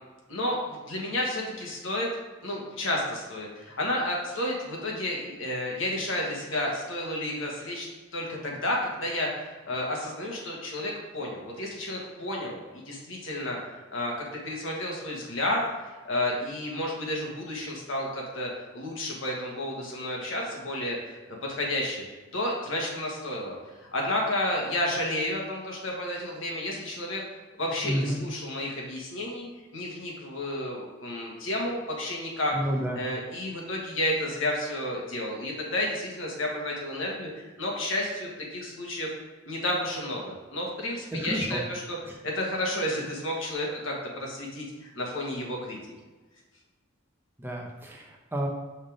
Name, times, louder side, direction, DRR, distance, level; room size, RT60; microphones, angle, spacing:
voice 1, 0.3-2.1 2.4-7.9 8.1-15.6 16.0-22.0 22.3-27.2 27.6-29.5 29.7-32.6 32.9-39.1 39.4-45.8, left 1 dB, 70° left, -2 dB, 1.5 m, -31 dB
voice 2, 27.8-28.2 32.5-33.0 41.1-41.6 42.1-42.2 47.4-48.5, equal, 10° right, 0 dB, 0.7 m, -30 dB
5.5 x 3.6 x 5.0 m, 1.2 s
head